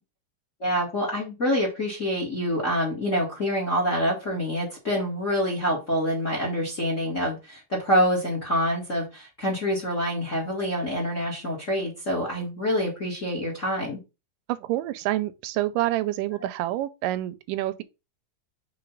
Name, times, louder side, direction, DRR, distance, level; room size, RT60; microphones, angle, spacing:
voice 1, 0.6-14.0, equal, 30° left, 1.7 m, -26 dB
voice 2, 14.5-17.8, right 15 dB, 85° right, 2.2 m, -27 dB
5.8 x 3.6 x 5.3 m
omnidirectional pair, 3.8 m